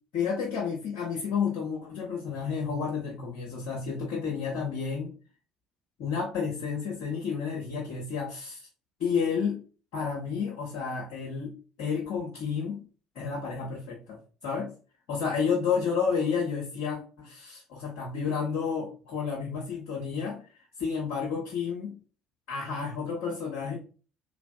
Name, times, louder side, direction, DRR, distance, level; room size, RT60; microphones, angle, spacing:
voice 1, 0.1-5.1 6.0-8.6 9.0-9.6 9.9-12.8 13.1-14.2 14.4-14.7 15.1-20.4 20.8-21.9 22.5-23.8, left 6 dB, 65° left, -4 dB, 0.8 m, -31 dB
3.1 x 2.5 x 2.2 m, 0.37 s
figure-of-eight pair, 55°, 3 cm